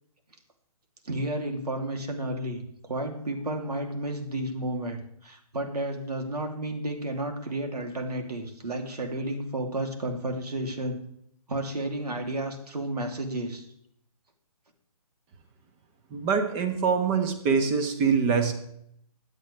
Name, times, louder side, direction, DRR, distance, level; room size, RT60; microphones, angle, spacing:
voice 1, 1.0-2.6 2.9-11.0 11.5-13.6, right 1 dB, 90° right, 3 dB, 3.2 m, -32 dB
voice 2, 16.1-18.5, right 5 dB, 20° right, 8 dB, 1.4 m, -24 dB
22.5 x 8.4 x 3.5 m, 0.71 s
hypercardioid pair, 150°, 20 cm